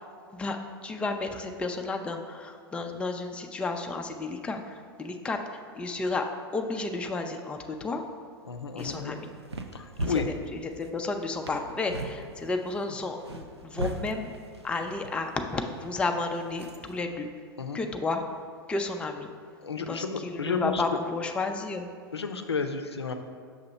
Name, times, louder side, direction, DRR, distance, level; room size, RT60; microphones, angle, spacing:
voice 1, 0.3-8.0 8.8-9.3 10.0-10.1 10.8-14.3 14.6-17.3 17.7-18.2 18.7-19.3 19.9-21.9, left 3 dB, 10° left, 4 dB, 0.3 m, -32 dB
voice 2, 8.4-9.2 9.7-10.3 17.6-17.8 19.6-20.8 22.1-23.1, left 5 dB, 85° left, 7 dB, 0.4 m, -32 dB
sound 1, 8.5-17.0, right 2 dB, 90° right, 0.4 m, -40 dB
6.1 x 2.8 x 5.4 m, 2.1 s
figure-of-eight pair, 95°, 13 cm